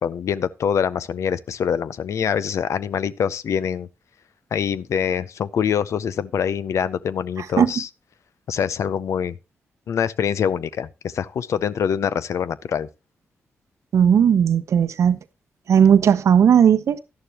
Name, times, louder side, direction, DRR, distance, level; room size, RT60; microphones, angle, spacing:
voice 1, 0.0-3.9 4.5-7.9 8.5-9.4 9.9-12.9, left 7 dB, 75° left, 0.5 m, -24 dB
voice 2, 13.9-15.2 15.7-17.0, right 8 dB, 75° right, 0.8 m, -16 dB
11.5 x 11.0 x 2.9 m
cardioid pair, 55°, 5 cm